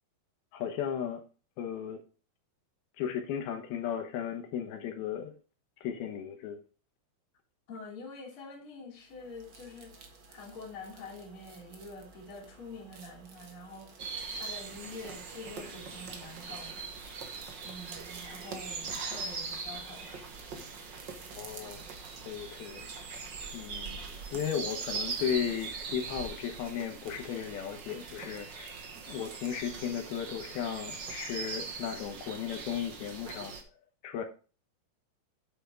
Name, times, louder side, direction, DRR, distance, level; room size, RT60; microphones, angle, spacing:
voice 1, 0.5-1.2 1.6-2.0 3.0-5.3 5.8-6.6 21.3-21.8 22.3-22.9 23.5-24.0 24.3-28.7 29.1-33.6 34.0-34.2, left 8 dB, 85° left, 3.0 m, -35 dB
voice 2, 7.7-10.0 10.3-14.0 14.3-16.9 17.6-20.2 20.6-20.8, left 2 dB, 35° left, 3.5 m, -46 dB
sound 1, 9.0-26.8, right 3 dB, 50° right, 1.5 m, -54 dB
sound 2, 14.0-33.6, right 5 dB, 65° right, 1.1 m, -41 dB
9.2 x 7.6 x 3.7 m
omnidirectional pair, 4.3 m